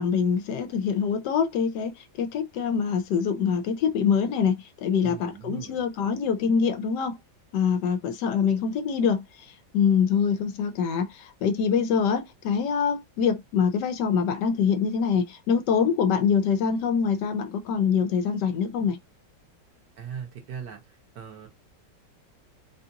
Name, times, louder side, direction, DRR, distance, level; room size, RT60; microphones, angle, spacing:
voice 1, 0.0-1.9 2.2-4.5 4.8-7.2 7.5-9.2 9.7-19.0, left 6 dB, 75° left, 1.2 m, -24 dB
voice 2, 5.0-5.8 20.0-21.5, right 7 dB, 70° right, 1.8 m, -39 dB
4.1 x 2.5 x 2.8 m
omnidirectional pair, 2.0 m